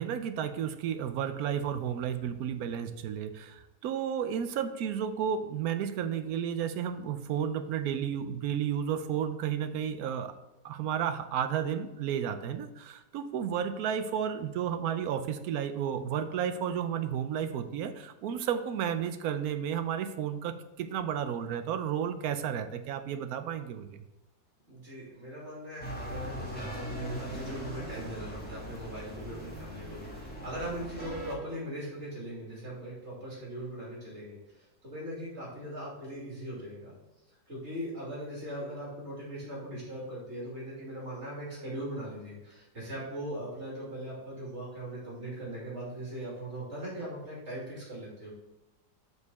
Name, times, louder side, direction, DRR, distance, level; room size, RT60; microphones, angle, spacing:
voice 1, 0.0-10.3 10.6-24.0, right 8 dB, 70° right, 9 dB, 0.9 m, -32 dB
voice 2, 24.7-36.9 37.5-48.3, right 1 dB, 40° right, -6 dB, 2.9 m, -40 dB
sound 1, 25.8-31.4, equal, 5° left, 1.5 m, -39 dB
6.5 x 5.2 x 4.1 m, 1.0 s
omnidirectional pair, 1.9 m